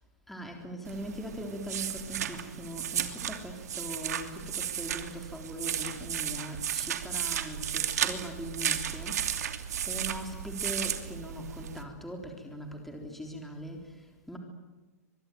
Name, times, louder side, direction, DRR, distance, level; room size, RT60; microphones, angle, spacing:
voice 1, 0.3-9.6 9.9-14.4, equal, ahead, 2 dB, 3.8 m, -41 dB
sound 1, 0.8-11.8, right 9 dB, 75° right, 2.8 m, -34 dB
24.5 x 22.5 x 9.4 m, 1.2 s
hypercardioid pair, 140°, 9 cm